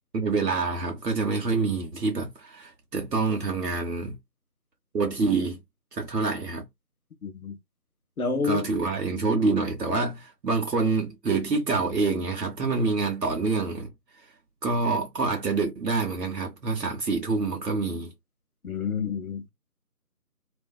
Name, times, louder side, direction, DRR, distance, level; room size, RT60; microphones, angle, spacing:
voice 1, 0.1-4.2 4.9-5.6 5.9-6.6 8.4-13.9 14.6-18.1, right 3 dB, 80° right, 0.8 m, -26 dB
voice 2, 7.2-7.6 8.2-8.6 18.6-19.5, left 5 dB, 65° left, 0.6 m, -28 dB
2.4 x 2.2 x 2.3 m
figure-of-eight pair, 170°, 48 cm